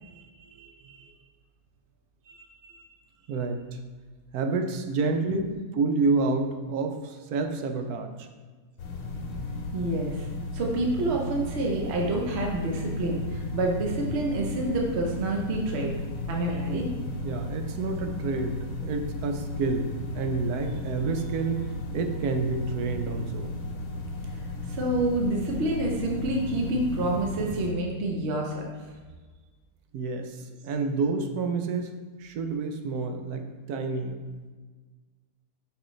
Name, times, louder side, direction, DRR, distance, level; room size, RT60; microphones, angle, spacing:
voice 1, 0.0-1.1 3.3-3.6 4.3-5.5 5.7-8.3 16.7-16.9 17.2-21.7 21.9-23.5 29.9-31.9 32.2-34.2, right 4 dB, 75° right, 5 dB, 1.1 m, -29 dB
sound 1, 8.8-27.7, left 2 dB, 60° left, 1.1 m, -35 dB
voice 2, 9.7-10.3 10.5-15.9 16.3-16.9 24.7-28.6, right 2 dB, 50° right, 0 dB, 0.9 m, -28 dB
6.3 x 5.5 x 3.1 m, 1.4 s
omnidirectional pair, 1.7 m